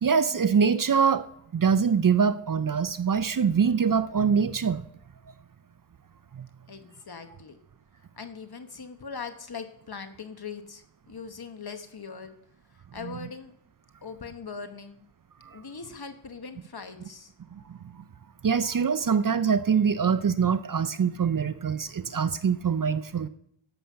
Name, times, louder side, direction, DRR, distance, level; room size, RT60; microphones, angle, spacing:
voice 1, 0.0-1.3 1.5-4.9 6.3-6.5 13.0-13.2 15.4-15.6 17.5-18.0 18.4-23.3, right 6 dB, 45° right, 14 dB, 0.5 m, -24 dB
voice 2, 6.7-7.6 8.2-12.4 12.9-13.5 14.0-15.0 15.5-17.3, left 5 dB, 50° left, 8 dB, 1.3 m, -41 dB
12.5 x 7.7 x 5.7 m, 0.71 s
wide cardioid pair, 60°, 48 cm